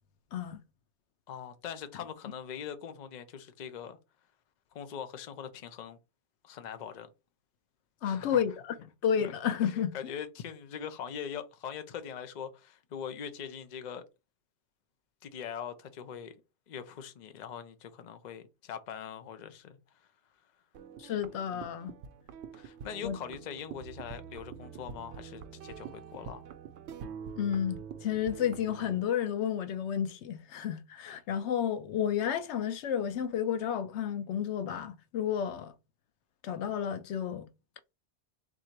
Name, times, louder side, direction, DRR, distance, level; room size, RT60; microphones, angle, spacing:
voice 1, 0.3-0.6 8.0-8.7 9.0-9.9 21.0-21.9 23.0-23.2 27.4-35.7 36.4-37.5, left 9 dB, 85° left, 0.9 m, -31 dB
voice 2, 1.3-4.0 4.7-6.0 6.4-7.1 8.0-8.4 9.2-9.3 9.6-14.0 15.2-16.3 16.7-19.8 22.5-26.4, left 8 dB, 50° left, 0.6 m, -42 dB
sound 1, 20.7-29.1, right 7 dB, 80° right, 0.9 m, -46 dB
3.7 x 2.7 x 4.4 m
omnidirectional pair, 1.1 m